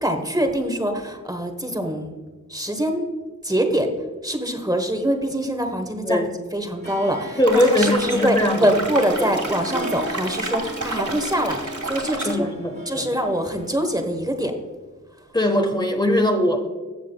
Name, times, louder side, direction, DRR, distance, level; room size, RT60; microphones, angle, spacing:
voice 1, 0.0-2.1 2.5-3.1 3.4-3.9 4.2-6.2 6.5-12.5 12.9-14.5, right 1 dB, 10° right, 4 dB, 1.1 m, -24 dB
Harp, 6.8-14.5, right 1 dB, 35° right, 1.5 m, -37 dB
voice 2, 7.4-8.7 9.2-9.3 12.2-13.1 15.3-16.7, left 1 dB, 15° left, 3 dB, 1.0 m, -20 dB
sound 1, 7.4-12.3, right 2 dB, 70° right, 2.6 m, -30 dB
14.5 x 7.2 x 2.2 m, 1.4 s
wide cardioid pair, 80°, 31 cm